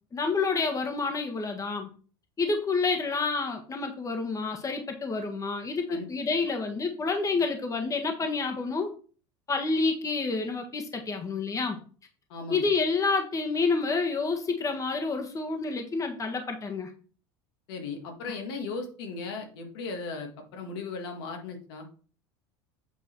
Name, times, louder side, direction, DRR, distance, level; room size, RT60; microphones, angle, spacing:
voice 1, 0.1-1.9 2.4-8.9 9.5-11.8 12.5-16.9, left 4 dB, 25° left, 4 dB, 1.5 m, -28 dB
voice 2, 12.3-12.7 17.7-21.9, left 4 dB, 80° left, 3 dB, 1.9 m, -37 dB
8.3 x 4.0 x 4.5 m, 0.41 s
hypercardioid pair, 90°, 13 cm